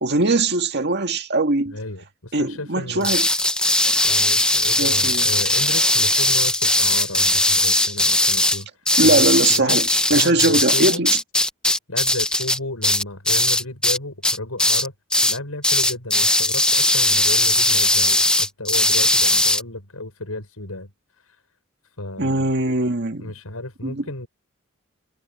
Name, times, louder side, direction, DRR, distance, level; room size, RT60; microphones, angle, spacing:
voice 1, 0.0-1.8 2.3-3.3 4.8-5.2 9.0-11.2 22.2-23.3 23.8-24.1, right 2 dB, 50° right, 1.9 m, -21 dB
voice 2, 1.6-3.1 4.0-8.7 9.0-11.0 11.9-14.9 15.2-20.9 21.2-21.4 22.0-22.5 23.2-24.3, left 2 dB, 85° left, 6.3 m, -33 dB
sound 1, 3.0-14.0 14.2-14.9 15.1-15.4 15.6-19.6, left 1 dB, 5° left, 1.4 m, -19 dB
head